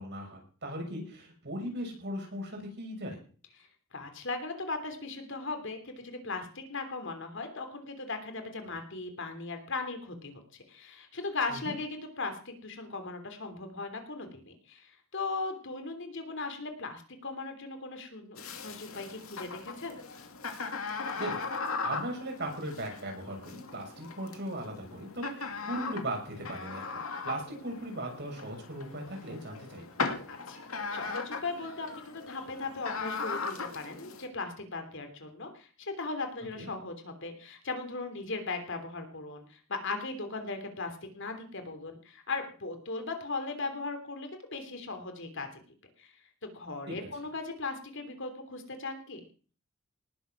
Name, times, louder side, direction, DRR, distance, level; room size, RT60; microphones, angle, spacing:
voice 1, 0.0-3.2 11.5-11.8 21.2-21.4 21.8-29.8 36.5-36.7 46.9-47.1, right 1 dB, 55° right, 2 dB, 6.7 m, -38 dB
voice 2, 3.6-20.0 30.3-30.6 30.9-45.5 46.0-46.1 46.4-49.2, left 3 dB, 60° left, 6 dB, 3.2 m, -38 dB
sound 1, 18.4-34.3, left 4 dB, 85° left, 2.5 m, -38 dB
19.0 x 8.1 x 6.0 m, 0.40 s
head